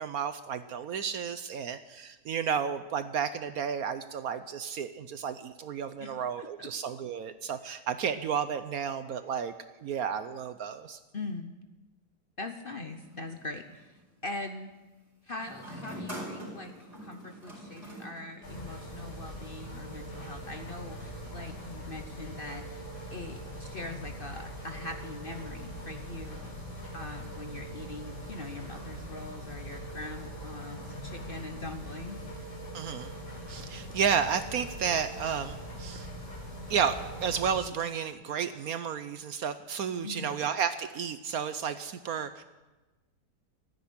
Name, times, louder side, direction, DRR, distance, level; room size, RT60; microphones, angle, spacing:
voice 1, 0.0-9.5 9.8-11.0 32.7-33.1 33.5-36.1 36.7-42.4, right 7 dB, 65° right, 11 dB, 1.0 m, -32 dB
voice 2, 6.0-6.7 11.1-11.5 12.4-13.9 14.2-14.7 15.3-16.7 17.0-22.8 23.1-26.5 26.9-32.2 40.0-40.3, left 2 dB, 40° left, 6 dB, 0.9 m, -42 dB
sound 1, 12.6-13.9 15.4-18.9, equal, 35° right, 5.1 m, -44 dB
sound 2, 18.4-37.6, equal, 65° left, 5.9 m, -42 dB
14.5 x 9.5 x 10.0 m, 1.1 s
omnidirectional pair, 1.9 m